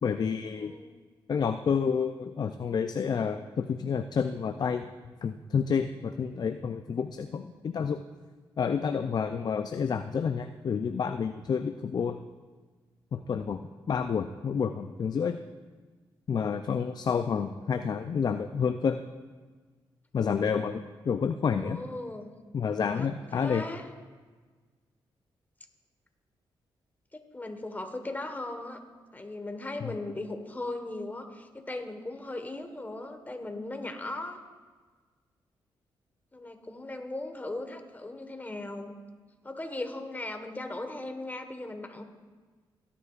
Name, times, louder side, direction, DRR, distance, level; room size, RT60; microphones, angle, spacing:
voice 1, 0.0-0.7 1.3-4.8 5.2-8.0 8.6-12.2 13.1-13.6 13.9-15.4 16.3-19.0 20.1-21.8 22.5-23.6 29.8-29.9, left 6 dB, 50° left, 8 dB, 0.4 m, -29 dB
voice 2, 0.6-0.9 21.6-22.3 23.0-23.9 27.1-28.8 29.1-34.4 36.3-38.9 39.4-42.0, left 2 dB, 20° left, 6 dB, 1.4 m, -38 dB
18.0 x 9.9 x 2.5 m, 1.4 s
cardioid pair, 70°, 9 cm